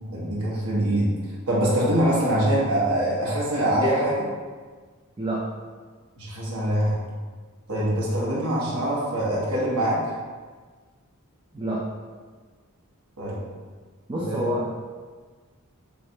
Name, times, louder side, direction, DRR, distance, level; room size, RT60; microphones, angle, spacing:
voice 1, 0.0-1.1 1.5-4.3 6.2-7.0 7.7-10.0 13.2-13.4 14.2-14.5, right 1 dB, 75° right, -6 dB, 0.9 m, -24 dB
voice 2, 14.1-14.7, right 1 dB, 20° right, -5 dB, 0.4 m, -27 dB
3.3 x 3.2 x 2.7 m, 1.5 s
head